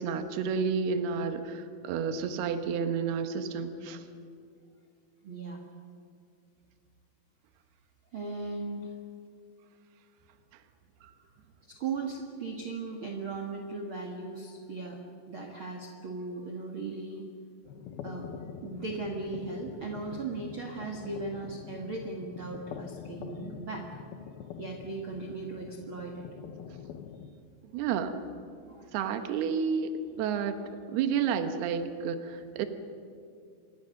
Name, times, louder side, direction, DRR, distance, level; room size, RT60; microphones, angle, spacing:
voice 1, 0.0-4.0 11.0-11.1 27.7-28.2 28.9-29.9 30.2-30.6 30.9-32.7, right 6 dB, 75° right, 8 dB, 3.3 m, -30 dB
voice 2, 5.2-5.6 8.1-8.9 11.7-15.0 15.3-17.3 18.0-18.3 18.6-23.9 24.6-26.2 28.7-29.0, right 3 dB, 45° right, 1 dB, 1.9 m, -37 dB
sound 1, 17.6-27.3, left 7 dB, 75° left, 2.9 m, -45 dB
27.5 x 22.5 x 6.6 m, 2.3 s
omnidirectional pair, 4.7 m